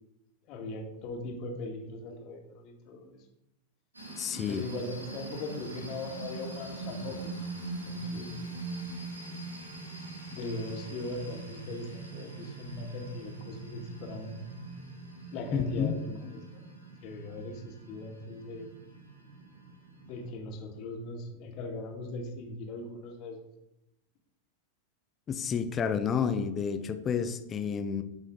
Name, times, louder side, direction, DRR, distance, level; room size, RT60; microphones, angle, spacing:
voice 1, 0.5-3.2 4.5-7.3 7.8-8.3 10.3-14.4 15.3-16.7 17.0-18.7 20.0-23.4, left 2 dB, 40° left, 1 dB, 2.1 m, -39 dB
sound 1, 3.9-20.3, right 3 dB, 80° right, 3.4 m, -42 dB
voice 2, 4.2-4.6 15.5-16.0 25.3-28.0, left 7 dB, 25° left, 9 dB, 0.8 m, -30 dB
13.0 x 5.4 x 3.8 m, 0.88 s
figure-of-eight pair, 90°, 0 cm